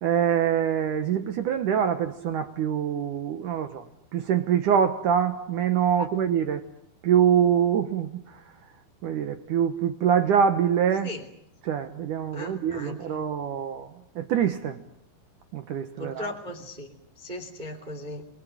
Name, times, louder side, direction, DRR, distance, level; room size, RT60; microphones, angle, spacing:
voice 1, 0.0-3.8 4.1-6.6 7.0-8.4 9.0-11.1 11.6-13.9 14.2-14.8 15.5-16.3, right 8 dB, 80° right, 9 dB, 1.8 m, -24 dB
voice 2, 12.3-13.0 16.0-18.3, left 2 dB, 15° right, 3 dB, 2.4 m, -37 dB
28.5 x 21.5 x 8.7 m, 0.73 s
omnidirectional pair, 5.4 m